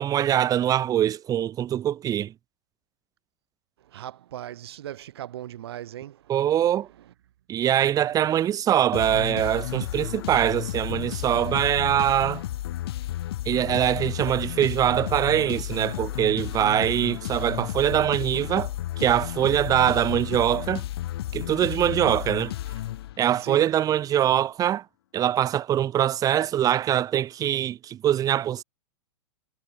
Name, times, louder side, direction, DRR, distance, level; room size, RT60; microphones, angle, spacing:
voice 1, 0.0-2.3 6.3-6.9 7.5-12.4 13.4-18.7 19.0-20.8 21.3-22.5 23.2-24.8 25.1-28.6, right 11 dB, 25° right, 1.1 m, -23 dB
voice 2, 3.8-6.3 8.1-8.5 23.4-23.7, right 12 dB, 60° right, 2.5 m, -39 dB
sound 1, 8.9-23.5, left 14 dB, 60° left, 3.9 m, -32 dB
figure-of-eight pair, 100°, 15 cm